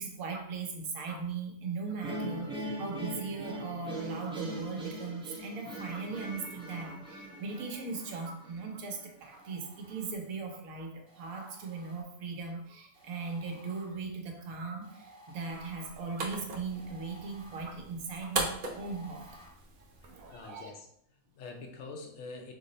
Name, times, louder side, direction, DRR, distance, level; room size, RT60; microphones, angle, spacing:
voice 1, 0.0-19.4 20.0-20.7, right 4 dB, 80° right, 3 dB, 1.1 m, -39 dB
sound 1, 2.0-9.1, right 1 dB, 10° right, 0.3 m, -41 dB
sound 2, 5.4-6.7 7.3-8.6 9.2-10.5 11.1-12.4 12.9-19.5, equal, 45° right, 1.0 m, -58 dB
sound 3, 15.5-20.5, right 3 dB, 60° right, 0.5 m, -39 dB
voice 2, 20.0-20.9 21.1-22.5, left 3 dB, 70° left, 2 dB, 0.9 m, -46 dB
3.2 x 2.0 x 3.8 m, 0.70 s
omnidirectional pair, 1.4 m